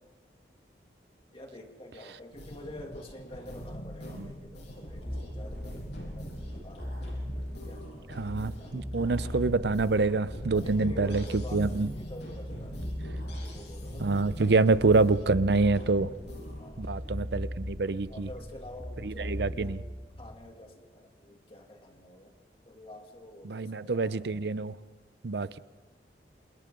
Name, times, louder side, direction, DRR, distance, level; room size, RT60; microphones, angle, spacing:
voice 1, 1.3-7.2 7.6-9.1 10.5-12.8 13.2-14.8 16.6-17.0 18.1-19.8 20.2-22.3 22.6-24.3, left 1 dB, 30° left, 2 dB, 2.6 m, -48 dB
sound 1, 2.3-16.9, equal, 75° left, 7.0 m, -44 dB
sound 2, 4.8-20.3, equal, 5° left, 2.2 m, -39 dB
voice 2, 8.2-11.2 11.5-11.9 14.0-16.1 16.8-18.3 19.0-19.8 23.4-24.8 25.2-25.6, right 3 dB, 70° right, 16 dB, 0.6 m, -26 dB
28.0 x 28.0 x 3.9 m, 1.3 s
head